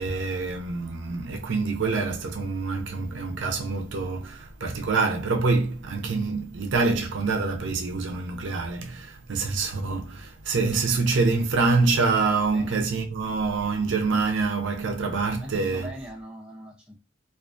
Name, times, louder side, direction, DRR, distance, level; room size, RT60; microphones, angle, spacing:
voice 1, 0.0-15.9, right 4 dB, 60° right, 0.5 m, -26 dB
voice 2, 15.4-17.0, right 1 dB, 5° right, 0.6 m, -40 dB
2.4 x 2.3 x 2.5 m
head